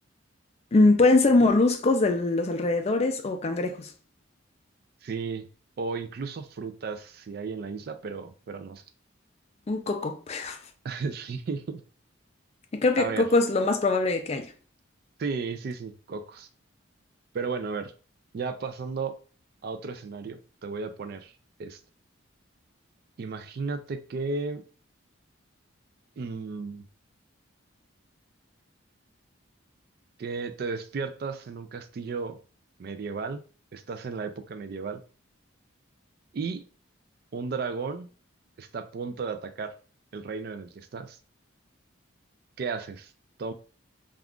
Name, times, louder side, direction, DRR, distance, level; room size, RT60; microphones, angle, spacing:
voice 1, 0.7-3.9 9.7-10.6 12.7-14.5, left 2 dB, 30° left, 0.3 m, -22 dB
voice 2, 5.0-5.4 5.8-8.8 10.8-11.8 13.0-13.3 15.2-16.5 17.3-17.9 18.3-19.2 19.6-21.3 21.6-21.8 23.2-24.6 26.2-26.8 30.2-32.4 32.8-33.4 33.7-35.0 36.3-36.6 37.3-38.1 38.6-39.7 40.1-41.2 42.6-43.1 43.4-43.5, right 4 dB, 50° right, 0.3 m, -34 dB
2.4 x 2.3 x 3.5 m
head